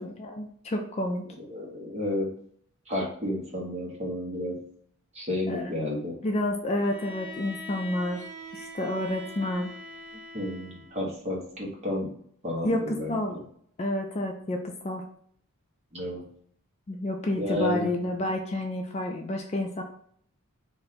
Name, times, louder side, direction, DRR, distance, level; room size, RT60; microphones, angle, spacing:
voice 1, 0.0-1.3 5.5-5.7 6.2-8.3 8.5-9.7 12.6-13.4 13.8-15.0 16.9-19.8, left 1 dB, 30° left, 3 dB, 0.3 m, -29 dB
voice 2, 1.4-2.3 2.9-4.6 5.1-6.2 10.3-12.1 12.4-13.4 15.9-16.2 17.4-17.9, left 1 dB, 30° right, -3 dB, 1.1 m, -31 dB
Bowed string instrument, 6.8-11.1, left 1 dB, 5° right, 0.6 m, -43 dB
3.2 x 2.6 x 4.1 m, 0.63 s
head